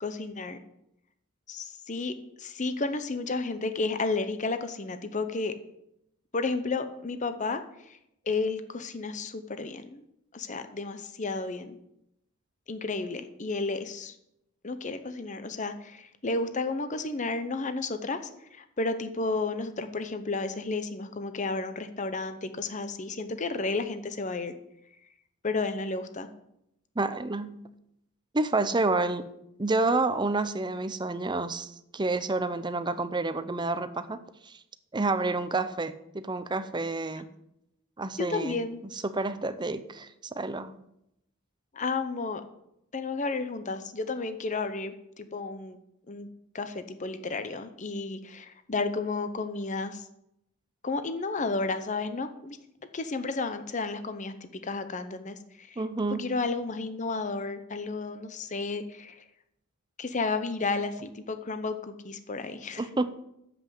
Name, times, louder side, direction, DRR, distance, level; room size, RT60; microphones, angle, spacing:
voice 1, 0.0-0.6 1.5-5.5 6.3-8.0 8.3-10.0 10.3-11.8 12.7-14.2 14.6-18.2 18.5-24.5 25.4-26.3 38.2-38.8 41.7-42.4 42.9-45.8 46.1-46.3 46.5-50.1 50.8-52.6 52.9-55.8 56.2-59.2 60.0-62.8, left 3 dB, 35° left, 10 dB, 0.7 m, -32 dB
voice 2, 27.0-27.5 28.3-29.3 29.6-34.6 34.9-37.3 38.0-38.6 38.9-40.7 55.8-56.3 62.8-63.1, right 3 dB, 20° right, 12 dB, 0.6 m, -29 dB
9.3 x 7.8 x 7.5 m, 0.81 s
head